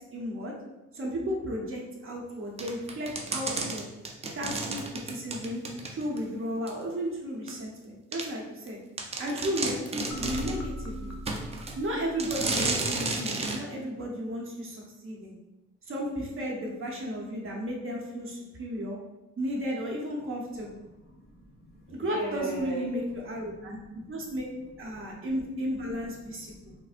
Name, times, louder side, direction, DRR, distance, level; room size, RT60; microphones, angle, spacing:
voice 1, 0.1-0.5 0.9-3.9 4.3-5.6 5.9-8.8 9.2-11.2 11.8-15.3 15.9-19.0 19.4-20.8 21.9-24.5 24.8-26.7, equal, 45° right, -1 dB, 0.9 m, -34 dB
sound 1, 2.6-6.2 6.7-6.8 7.5-7.6 8.1-8.3 8.7-8.8 9.0-10.6 11.3-11.8 12.2-13.6, right 3 dB, 20° right, 0.4 m, -32 dB
sound 2, 10.1-13.2, equal, 55° left, 0.5 m, -40 dB
voice 2, 21.0-23.0 23.7-24.2 25.1-25.3 26.3-26.8, right 1 dB, 30° left, -4 dB, 1.4 m, -39 dB
4.0 x 2.0 x 2.5 m, 1.0 s
cardioid pair, 90°, 30 cm